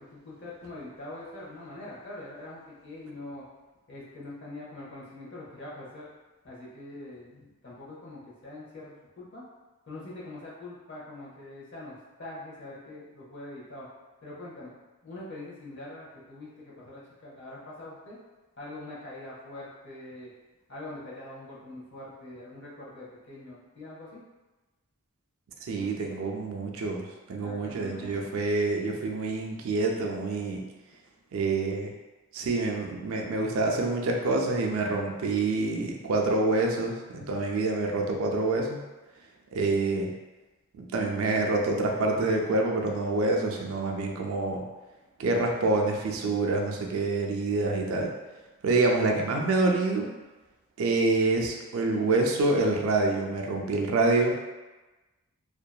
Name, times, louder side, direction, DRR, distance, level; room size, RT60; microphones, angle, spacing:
voice 1, 0.0-3.4 3.9-6.1 6.4-9.4 9.9-13.9 14.2-14.7 15.0-18.2 18.6-20.3 20.7-24.2 25.7-26.0 27.4-28.2, left 2 dB, 50° left, -7 dB, 0.8 m, -43 dB
voice 2, 25.6-30.6 31.3-31.9 32.3-38.8 39.5-40.1 40.8-44.6 45.2-48.1 48.6-50.1 50.8-54.3, right 2 dB, 70° right, 1 dB, 0.4 m, -27 dB
2.7 x 2.3 x 2.2 m, 1.2 s
head